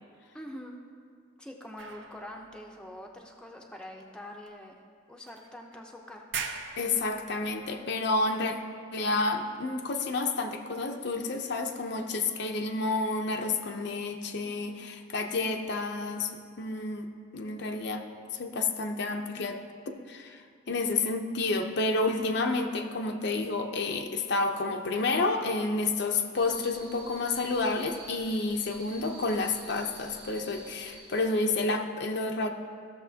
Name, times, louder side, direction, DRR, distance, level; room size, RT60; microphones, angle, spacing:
voice 1, 0.3-0.8 1.4-4.8 5.1-6.2, left 1 dB, 5° left, 0 dB, 0.6 m, -44 dB
sound 1, 1.8-3.7 4.5-4.6 5.3-5.9 6.2-7.8, right 6 dB, 65° right, 0.7 m, -42 dB
voice 2, 6.8-8.6 8.9-16.3 16.6-17.1 17.3-18.0 18.3-32.5, left 3 dB, 55° left, 4 dB, 0.6 m, -30 dB
sound 2, 26.3-31.4, right 2 dB, 45° right, 1.2 m, -49 dB
15.5 x 6.6 x 2.8 m, 2.2 s
head